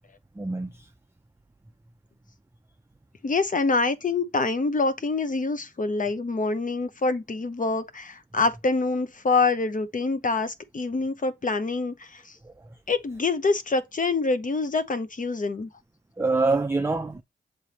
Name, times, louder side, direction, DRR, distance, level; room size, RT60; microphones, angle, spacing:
voice 1, 0.3-0.9 12.4-12.8 16.2-17.2, right 3 dB, 15° right, 0.6 m, -26 dB
voice 2, 3.2-12.4 12.9-15.7, left 3 dB, 45° left, 1.0 m, -26 dB
7.1 x 3.4 x 4.2 m
wide cardioid pair, 85°, 19 cm